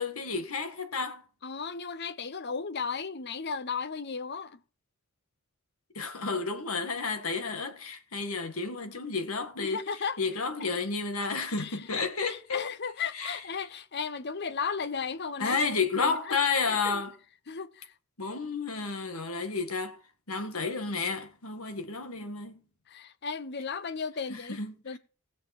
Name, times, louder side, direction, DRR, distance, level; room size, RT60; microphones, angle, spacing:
voice 1, 0.0-1.2 6.0-9.8 10.2-12.6 13.1-13.4 15.4-17.2 18.2-20.0 20.3-22.6 24.3-25.0, left 4 dB, 90° left, 1.9 m, -31 dB
voice 2, 1.4-4.6 9.6-10.2 10.6-10.8 11.6-11.8 12.3-15.6 16.0-16.3 16.7-17.0 17.5-17.9 18.3-18.5 22.9-24.6 24.8-25.0, left 5 dB, 50° left, 0.8 m, -35 dB
19.5 x 6.8 x 4.3 m
head